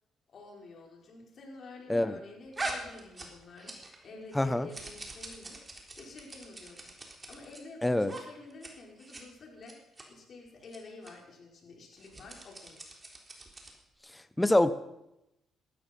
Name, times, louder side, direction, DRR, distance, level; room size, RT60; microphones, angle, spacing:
voice 1, 0.3-12.8, left 3 dB, 55° left, 0 dB, 5.2 m, -50 dB
sound 1, 2.5-4.0 4.3-7.6 8.0-8.2 8.5-8.7 9.0-9.2 9.6-10.0 10.6-10.8 11.0-11.1 11.9-13.8, right 2 dB, 25° right, 3.7 m, -42 dB
voice 2, 4.3-4.7 7.8-8.1 14.4-14.7, left 1 dB, 10° left, 13 dB, 1.1 m, -25 dB
17.5 x 14.0 x 5.5 m, 0.86 s
cardioid pair, 90°, 0 cm